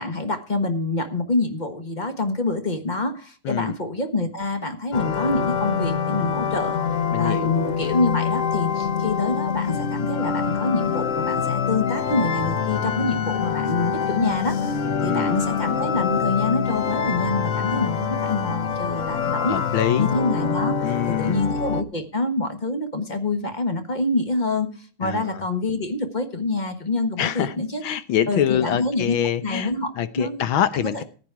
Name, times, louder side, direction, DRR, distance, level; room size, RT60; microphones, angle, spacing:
voice 1, 0.0-6.8 7.2-14.7 15.0-19.6 20.0-24.7 25.0-27.8 28.3-29.2 29.4-30.4 30.8-31.0, left 2 dB, 25° left, 7 dB, 1.2 m, -26 dB
sound 1, 4.9-21.8, left 6 dB, 60° left, 0.8 m, -25 dB
voice 2, 7.1-7.5 14.8-15.4 19.5-20.1 20.8-21.4 25.0-25.4 27.2-27.5 27.8-31.0, left 10 dB, 75° left, 13 dB, 1.7 m, -25 dB
14.5 x 9.3 x 4.8 m, 0.39 s
omnidirectional pair, 2.3 m